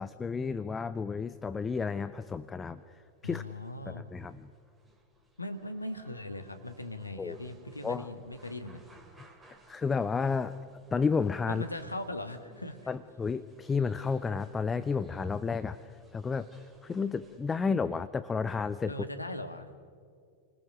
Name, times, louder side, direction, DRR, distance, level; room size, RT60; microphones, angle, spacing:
voice 1, 0.0-3.4 3.9-4.5 7.2-7.4 7.8-8.1 9.5-10.6 10.9-11.6 12.9-16.5 16.8-18.9, left 5 dB, 15° left, 13 dB, 0.7 m, -32 dB
sound 1, 1.7-17.7, right 1 dB, 15° right, 3.2 m, -60 dB
voice 2, 3.2-4.1 5.4-8.8 11.5-12.9 18.9-19.7, left 1 dB, 85° left, 8 dB, 1.6 m, -39 dB
29.5 x 20.0 x 6.2 m, 2.3 s
figure-of-eight pair, 90°, 0 cm